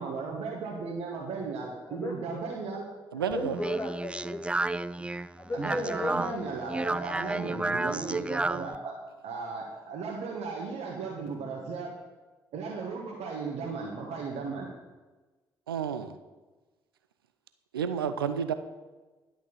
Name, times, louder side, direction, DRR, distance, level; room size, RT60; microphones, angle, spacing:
voice 1, 0.0-2.8 5.6-8.9 9.2-11.9 12.5-14.7, right 4 dB, 60° right, -2 dB, 1.5 m, -36 dB
voice 2, 1.3-2.5 3.1-5.1 5.4-6.5, left 2 dB, 20° left, 4 dB, 1.2 m, -37 dB
voice 3, 3.1-3.6 15.7-16.2 17.7-18.5, right 7 dB, 85° right, 11 dB, 0.5 m, -30 dB
Speech, 3.3-8.7, right 2 dB, 10° right, 0.3 m, -32 dB
11.0 x 6.1 x 7.2 m, 1.2 s
figure-of-eight pair, 40°, 12 cm